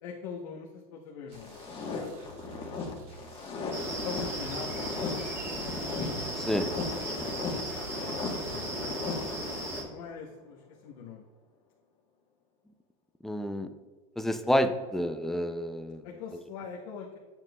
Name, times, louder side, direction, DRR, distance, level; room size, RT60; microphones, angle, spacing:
voice 1, 0.0-2.6 4.0-5.2 7.0-8.0 8.4-11.2 16.0-17.2, left 6 dB, 75° left, -2 dB, 1.0 m, -43 dB
sound 1, 1.3-9.9, left 4 dB, 30° left, 1.2 m, -37 dB
sound 2, 1.3-8.7, right 5 dB, 70° right, 1.7 m, -50 dB
sound 3, 3.7-9.8, right 1 dB, 15° right, 1.2 m, -36 dB
voice 2, 6.4-6.7 13.2-13.7 14.2-16.0, equal, ahead, 7 dB, 0.3 m, -29 dB
7.7 x 7.3 x 2.3 m, 1.4 s
supercardioid pair, 135°, 18 cm